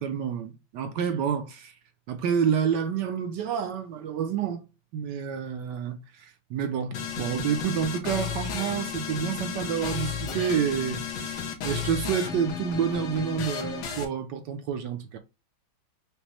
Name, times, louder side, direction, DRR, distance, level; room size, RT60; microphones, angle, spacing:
voice 1, 0.0-1.7 2.1-4.6 4.9-15.2, right 7 dB, 70° right, 1.2 m, -29 dB
sound 1, 6.9-14.1, left 7 dB, 65° left, 1.4 m, -33 dB
5.2 x 2.2 x 2.9 m
omnidirectional pair, 2.1 m